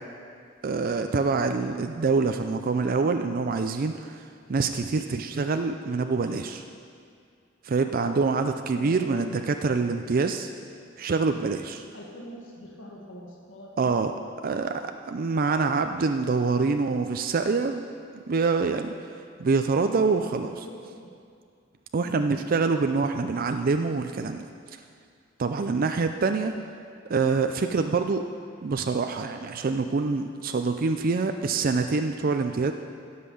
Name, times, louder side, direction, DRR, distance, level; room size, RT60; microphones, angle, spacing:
voice 1, 0.6-6.6 7.6-10.5 11.0-11.8 13.8-14.1 14.4-17.9 18.3-18.9 19.4-20.7 21.9-24.4 25.4-26.6 27.1-28.2 28.6-32.7, right 4 dB, 50° right, 6 dB, 0.4 m, -25 dB
voice 2, 11.9-14.0 20.4-21.0 22.0-22.4, equal, 80° left, -3 dB, 1.9 m, -44 dB
16.0 x 5.7 x 7.0 m, 2.3 s
head